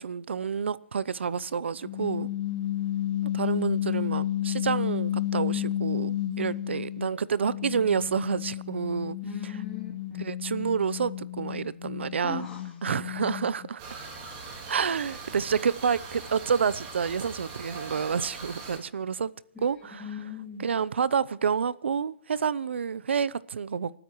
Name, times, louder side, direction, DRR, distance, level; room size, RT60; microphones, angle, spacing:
voice 1, 0.0-2.3 3.2-9.2 10.2-12.4 12.8-13.8 14.7-19.3 19.6-20.0 20.6-23.9, right 6 dB, 85° right, 0.7 m, -29 dB
sound 1, 1.8-7.1 7.4-13.7, left 13 dB, 40° left, 1.3 m, -32 dB
voice 2, 9.2-10.3 12.2-12.8 19.5-20.7, left 6 dB, 5° left, 2.9 m, -39 dB
sound 2, 13.8-18.8, right 4 dB, 30° right, 4.1 m, -41 dB
29.0 x 13.0 x 3.1 m
hypercardioid pair, 165°, 6 cm